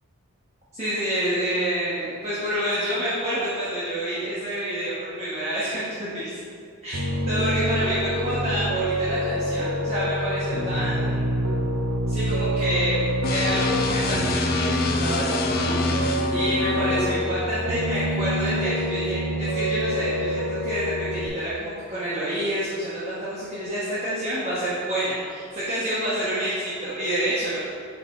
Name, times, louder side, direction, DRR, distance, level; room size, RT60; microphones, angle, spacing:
voice 1, 0.7-6.4 6.8-7.0 7.2-11.7 12.1-27.6, right 1 dB, 30° right, -11 dB, 1.1 m, -28 dB
Piano, 6.9-21.3, equal, 70° right, 0.7 m, -27 dB
sound 1, 13.2-17.2, left 3 dB, 40° left, 0.4 m, -27 dB
7.2 x 4.2 x 3.9 m, 2.4 s
head